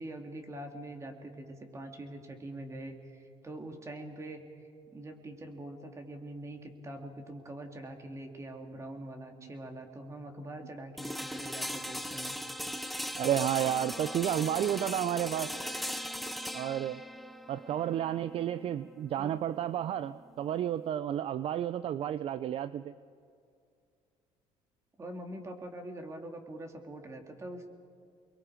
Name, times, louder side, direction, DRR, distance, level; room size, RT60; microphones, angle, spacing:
voice 1, 0.0-4.4 4.9-12.4 19.2-19.4 25.0-27.7, right 1 dB, 25° right, 3 dB, 3.1 m, -44 dB
sound 1, 11.0-20.9, equal, ahead, 1.0 m, -39 dB
voice 2, 13.2-15.5 16.5-17.0 17.5-22.9, right 11 dB, 50° right, 14 dB, 0.5 m, -31 dB
29.0 x 22.0 x 5.0 m, 2.4 s
cardioid pair, 115°, 12 cm